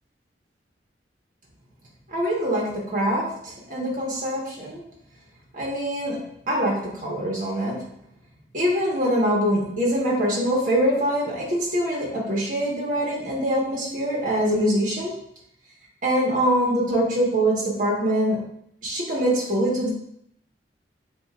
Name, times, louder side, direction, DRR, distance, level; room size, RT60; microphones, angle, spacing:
voice 1, 2.1-4.8 5.5-6.2 6.5-7.9 8.5-15.1 16.0-18.5 18.8-19.9, equal, 50° right, -3 dB, 1.3 m, -24 dB
7.6 x 2.7 x 2.4 m, 0.70 s
head